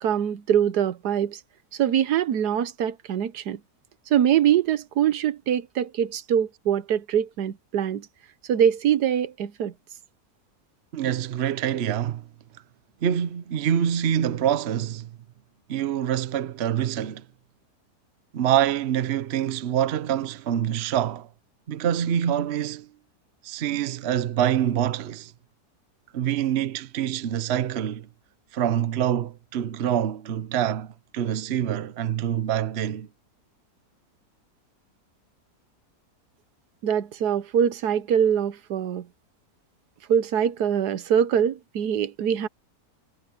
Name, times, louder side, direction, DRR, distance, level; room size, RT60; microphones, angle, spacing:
voice 1, 0.0-1.4 1.7-3.6 4.1-8.1 8.5-9.7 36.8-39.1 40.1-42.5, right 9 dB, 80° right, 1.4 m, -23 dB
voice 2, 10.9-12.2 13.0-15.1 15.7-17.2 18.3-21.3 21.7-22.9 23.4-25.3 26.1-28.1 28.5-33.1, right 10 dB, 50° right, 0.9 m, -25 dB
omnidirectional pair, 1.7 m